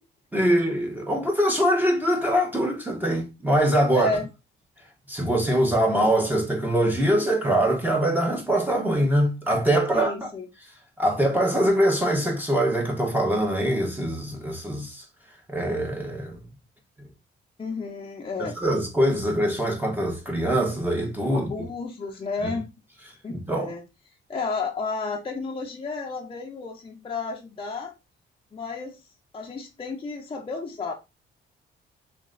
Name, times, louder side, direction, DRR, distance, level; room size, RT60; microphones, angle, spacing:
voice 1, 0.3-4.1 5.1-10.1 11.0-15.0 15.5-16.4 18.6-21.5 22.4-22.5 23.3-23.7, right 1 dB, 10° right, 1.4 m, -23 dB
voice 2, 3.9-4.3 9.9-10.5 17.6-18.6 21.3-22.7 23.2-23.8 24.3-27.9 28.5-29.0 29.3-30.9, left 3 dB, 25° left, 0.8 m, -32 dB
3.3 x 3.0 x 3.9 m
cardioid pair, 90°, 20 cm